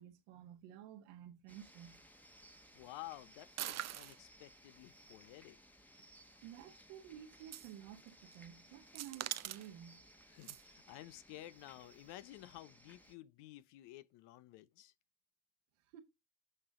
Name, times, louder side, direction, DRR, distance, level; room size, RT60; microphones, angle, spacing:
voice 1, 0.0-2.0 6.4-10.1 15.9-16.0, right 11 dB, 80° right, 1.6 m, -53 dB
sound 1, 1.5-13.2, equal, 5° left, 1.1 m, -62 dB
voice 2, 2.7-5.6 10.3-14.9, left 15 dB, 70° left, 0.8 m, -53 dB
sound 2, 3.5-4.2 6.0-6.1 7.4-7.7 8.1-8.4 8.9-9.7 10.4-10.6, right 12 dB, 40° right, 0.6 m, -43 dB
9.8 x 5.1 x 3.7 m
hypercardioid pair, 70°, 42 cm